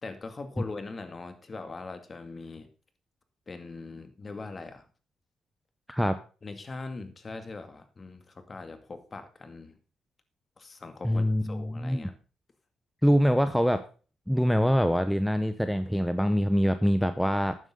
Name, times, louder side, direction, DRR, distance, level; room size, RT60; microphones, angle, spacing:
voice 1, 0.0-2.7 3.5-4.9 6.4-9.8 10.6-12.2, left 3 dB, 30° left, 8 dB, 2.1 m, -41 dB
voice 2, 11.0-12.1 13.0-13.8 14.3-17.6, equal, ahead, 10 dB, 0.9 m, -24 dB
12.0 x 9.4 x 3.7 m, 0.36 s
cardioid pair, 90°, 0 cm